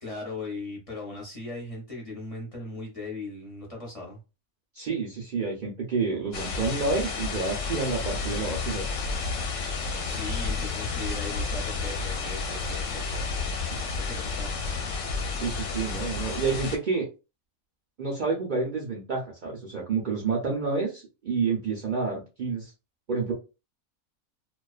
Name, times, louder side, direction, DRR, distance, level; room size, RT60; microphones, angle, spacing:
voice 1, 0.0-4.2 10.0-13.3 13.7-14.7, left 3 dB, 30° left, -3 dB, 0.7 m, -38 dB
voice 2, 4.7-8.9 15.3-17.1 18.0-22.7 23.1-23.3, right 4 dB, 65° right, -2 dB, 0.4 m, -29 dB
sound 1, 6.3-16.8, left 4 dB, 70° left, 0.9 m, -31 dB
2.3 x 2.3 x 2.3 m, 0.29 s
omnidirectional pair, 1.5 m